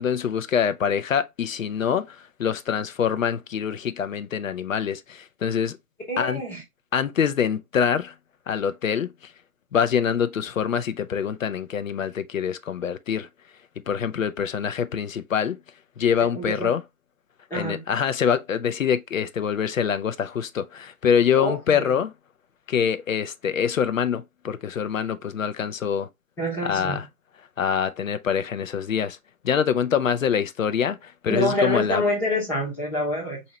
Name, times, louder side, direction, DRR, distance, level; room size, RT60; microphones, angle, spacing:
voice 1, 0.0-5.8 6.2-6.4 6.9-8.1 8.5-9.1 9.7-13.3 13.9-15.6 16.0-16.8 17.5-22.1 22.7-26.1 26.6-27.0 27.6-29.2 29.4-32.0, left 7 dB, 65° left, 0.7 m, -25 dB
voice 2, 6.1-6.6 16.2-16.8 17.5-17.8 21.3-21.9 26.4-27.0 31.3-33.4, left 1 dB, 5° left, 0.7 m, -27 dB
4.3 x 2.8 x 2.8 m
figure-of-eight pair, 135°, 43 cm